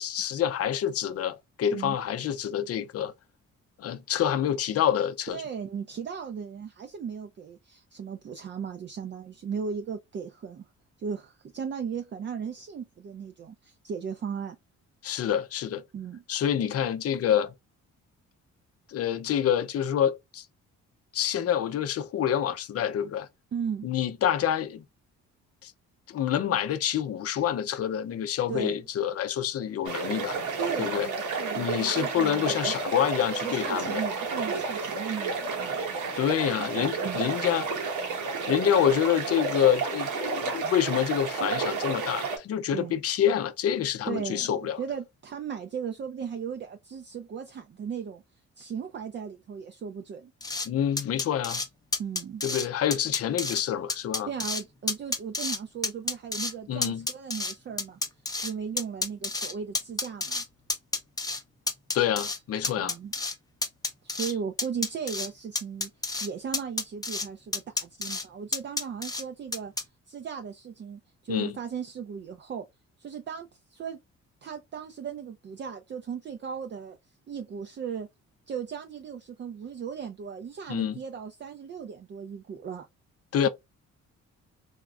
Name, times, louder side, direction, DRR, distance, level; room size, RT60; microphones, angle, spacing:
voice 1, 0.0-3.1 3.8-5.4 15.0-15.8 16.3-17.5 18.9-20.5 21.1-23.3 23.8-24.8 25.6-25.7 26.1-30.4 30.8-31.1 31.6-34.0 36.2-37.7 38.5-44.8 50.7-51.6 52.4-54.3 56.7-57.1 61.9-62.9 71.3-71.5 80.7-81.0 83.3-83.5, left 9 dB, 50° left, 0.5 m, -27 dB
voice 2, 5.3-10.6 11.0-14.6 15.9-16.2 23.5-23.9 28.5-28.7 30.6-32.8 33.4-35.8 37.0-37.2 42.7-42.9 44.1-48.2 48.6-50.3 52.0-52.4 54.3-58.0 58.4-60.4 62.8-63.1 64.0-65.9 66.2-69.7 70.1-72.6 73.0-74.0 74.4-77.0 77.3-78.1 78.5-82.9, right 7 dB, 40° right, 0.4 m, -36 dB
sound 1, 29.9-42.4, right 4 dB, 75° right, 1.1 m, -31 dB
sound 2, 50.4-50.7 51.0-51.7 51.9-52.7 52.9-53.6 53.9-54.6 54.9-55.6 55.8-56.5 56.8-58.5 58.8-60.4 60.7-61.4 61.7-62.4 62.6-63.3 63.6-64.3 64.6-65.3 65.6-66.3 66.5-67.3 67.5-68.2 68.5-69.2 69.5-69.8, left 3 dB, 10° left, 0.7 m, -30 dB
3.5 x 2.0 x 2.3 m
cardioid pair, 90°, 30 cm